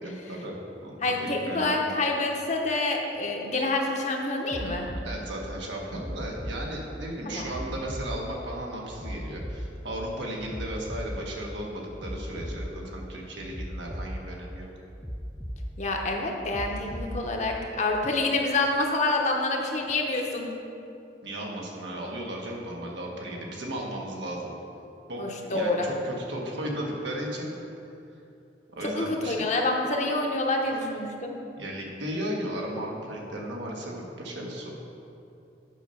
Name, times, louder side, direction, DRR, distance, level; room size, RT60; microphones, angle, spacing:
voice 1, 0.0-1.9 5.0-14.7 21.2-24.5 25.1-27.8 28.7-29.4 30.7-30.8 31.6-34.7, right 1 dB, 85° right, -1 dB, 1.5 m, -35 dB
voice 2, 1.0-4.9 7.3-7.6 15.8-20.5 25.2-25.9 28.8-31.4, left 2 dB, 40° left, 1 dB, 0.9 m, -27 dB
sound 1, 4.5-5.1 6.0-6.6 7.5-8.1 9.0-9.6 10.5-11.1 12.0-12.6 13.5-14.1 15.0-15.6 16.5-17.1 18.0-18.1, equal, 5° left, 0.5 m, -36 dB
8.3 x 5.6 x 5.7 m, 2.7 s
head